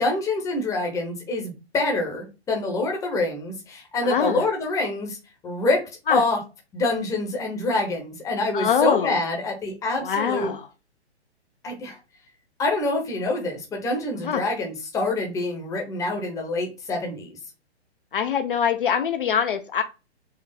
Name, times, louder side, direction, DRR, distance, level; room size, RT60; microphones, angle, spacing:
voice 1, 0.0-5.2 5.4-5.8 6.1-6.4 6.7-10.5 11.6-12.0 12.6-17.3, left 2 dB, 10° left, 2 dB, 0.9 m, -26 dB
voice 2, 4.0-4.5 6.1-6.2 8.5-9.2 10.0-10.7 14.2-14.4 18.1-19.8, left 7 dB, 50° left, 7 dB, 0.6 m, -23 dB
4.5 x 2.3 x 3.5 m, 0.29 s
figure-of-eight pair, 120°, 34 cm